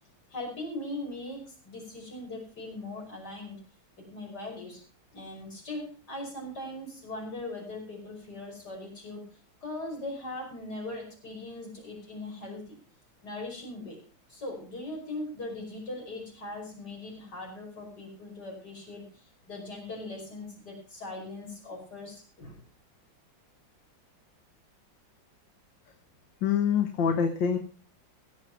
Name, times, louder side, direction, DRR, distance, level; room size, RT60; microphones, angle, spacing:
voice 1, 0.3-3.6 4.0-4.8 5.1-9.2 9.6-12.8 13.2-14.0 14.3-22.6, left 2 dB, 55° left, 0 dB, 5.9 m, -40 dB
voice 2, 26.4-27.6, left 7 dB, 70° left, 6 dB, 1.9 m, -25 dB
16.5 x 8.1 x 5.9 m, 0.39 s
omnidirectional pair, 2.1 m